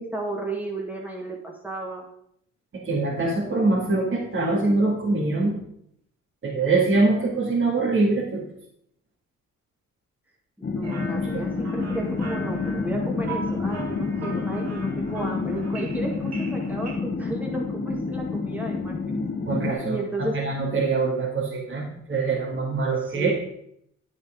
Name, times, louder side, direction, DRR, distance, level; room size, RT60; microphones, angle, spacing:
voice 1, 0.0-2.1 10.6-19.2 19.8-20.4 23.0-23.3, right 1 dB, 5° right, -1 dB, 2.1 m, -33 dB
voice 2, 2.8-5.5 6.4-8.4 19.5-23.3, right 3 dB, 40° right, -6 dB, 2.7 m, -23 dB
sound 1, 10.6-19.7, left 4 dB, 35° left, 1.2 m, -28 dB
sound 2, 10.8-16.9, right 3 dB, 65° right, 3.2 m, -39 dB
10.0 x 8.0 x 3.9 m, 0.72 s
cardioid pair, 85°, 29 cm